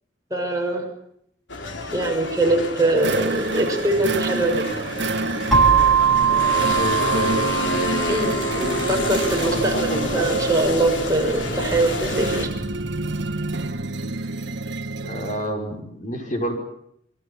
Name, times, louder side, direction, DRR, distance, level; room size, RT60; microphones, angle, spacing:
voice 1, 0.3-0.8 1.9-4.7 8.1-12.5, right 2 dB, 20° right, 1 dB, 6.3 m, -22 dB
sound 1, 1.5-12.5, left 2 dB, 90° left, 3.3 m, -29 dB
sound 2, 3.0-15.5, right 2 dB, 70° right, 1.5 m, -29 dB
sound 3, 5.5-13.3, right 6 dB, ahead, 4.9 m, -23 dB
voice 2, 6.7-7.4 8.9-9.1 9.4-10.2 15.0-16.6, equal, 45° left, 3 dB, 6.0 m, -29 dB
27.5 x 24.0 x 7.4 m, 0.74 s
head